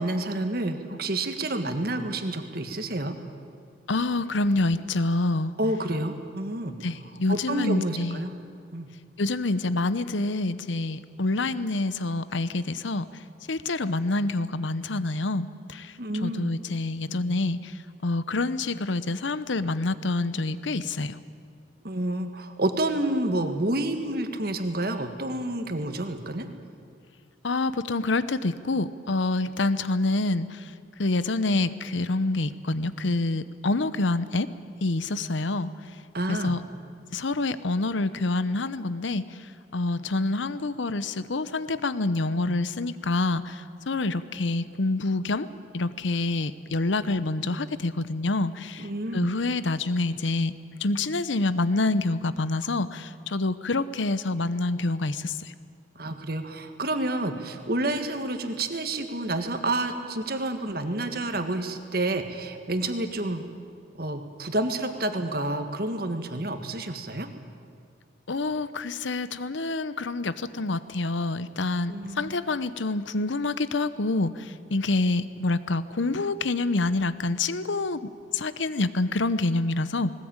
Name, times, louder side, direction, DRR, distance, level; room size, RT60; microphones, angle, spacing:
voice 1, 0.0-3.2 5.6-6.8 7.3-8.3 8.7-8.9 16.0-16.5 21.8-26.5 36.1-36.6 44.1-44.2 48.8-49.3 55.9-63.4 64.0-67.3 71.9-72.3, right 1 dB, 50° right, 7 dB, 1.7 m, -29 dB
voice 2, 3.9-5.5 6.8-8.3 9.2-13.0 13.5-15.9 16.2-17.7 18.0-21.2 27.4-30.6 31.0-34.5 34.8-35.7 36.3-36.6 37.1-39.2 39.7-45.5 45.7-48.9 49.1-50.5 50.8-55.5 68.3-80.1, left 2 dB, 75° left, 15 dB, 0.8 m, -27 dB
20.0 x 19.5 x 8.9 m, 2.3 s
head